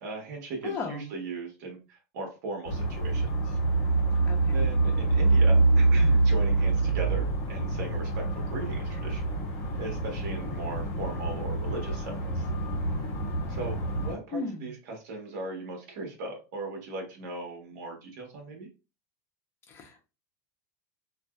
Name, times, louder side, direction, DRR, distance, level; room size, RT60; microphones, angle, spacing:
voice 1, 0.0-3.6 4.5-9.3 9.8-12.5 13.5-18.7, right 2 dB, 65° right, 1 dB, 1.1 m, -38 dB
voice 2, 0.6-1.1 4.3-4.6 14.3-14.7 19.7-20.0, left 4 dB, 25° left, 2 dB, 0.8 m, -36 dB
sound 1, 2.7-14.2, right 2 dB, 40° left, 1.6 m, -26 dB
2.8 x 2.6 x 2.3 m, 0.31 s
supercardioid pair, 140°, 10 cm